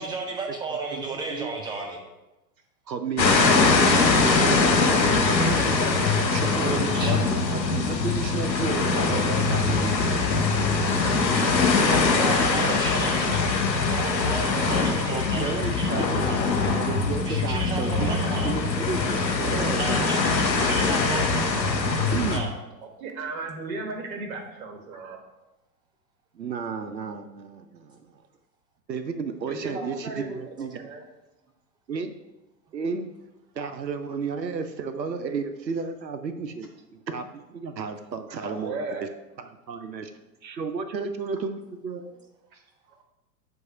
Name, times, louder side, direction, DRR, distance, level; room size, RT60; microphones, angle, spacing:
voice 1, 0.0-2.0 3.4-3.6 3.8-4.6 6.6-7.1 12.1-16.5 17.2-18.5 19.7-21.8 22.3-22.5, right 3 dB, 10° right, 1 dB, 0.6 m, -34 dB
voice 2, 0.9-1.6 2.9-5.7 6.3-10.0 12.9-13.5 15.1-18.1 18.4-20.1 20.6-21.2 22.1-22.4 26.3-28.2 28.9-30.9 31.9-32.1 32.7-33.1 33.5-36.7 37.1-39.1 39.4-40.1 40.4-42.1, right 5 dB, 80° right, 9 dB, 0.7 m, -33 dB
sound 1, 3.2-22.4, left 4 dB, 85° left, 0.8 m, -22 dB
voice 3, 10.4-11.7 23.0-25.2 29.5-31.0 38.3-39.0 42.5-42.6, right 3 dB, 55° right, 3 dB, 1.4 m, -36 dB
sound 2, 15.9-21.0, left 5 dB, 20° left, 1.0 m, -40 dB
7.6 x 2.7 x 5.5 m, 0.99 s
figure-of-eight pair, 100°, 50 cm